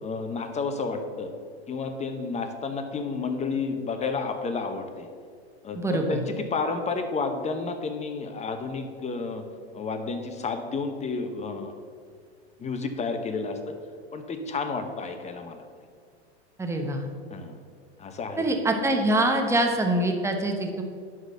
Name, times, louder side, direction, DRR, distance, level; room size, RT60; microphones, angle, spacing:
voice 1, 0.0-1.3 1.7-5.1 5.6-9.4 9.7-11.7 12.6-13.7 14.1-15.6 17.3-17.5 18.0-18.5, left 4 dB, 20° left, 7 dB, 1.0 m, -31 dB
voice 2, 5.7-6.2 16.6-17.1 18.4-20.8, right 1 dB, 10° right, 3 dB, 1.2 m, -24 dB
11.0 x 4.1 x 6.7 m, 2.1 s
hypercardioid pair, 100°, 33 cm